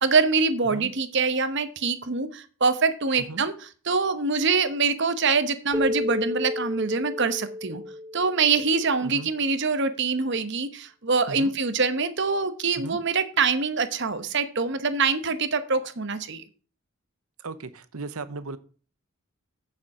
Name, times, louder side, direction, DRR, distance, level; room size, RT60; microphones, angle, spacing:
voice 1, 0.0-3.5 3.9-7.8 8.1-16.4, right 4 dB, 50° right, 11 dB, 1.0 m, -24 dB
Keyboard (musical), 5.7-8.9, left 1 dB, 5° right, 0.5 m, -32 dB
voice 2, 17.4-18.6, right 3 dB, 75° right, 13 dB, 0.9 m, -36 dB
8.9 x 7.1 x 4.8 m, 0.40 s
head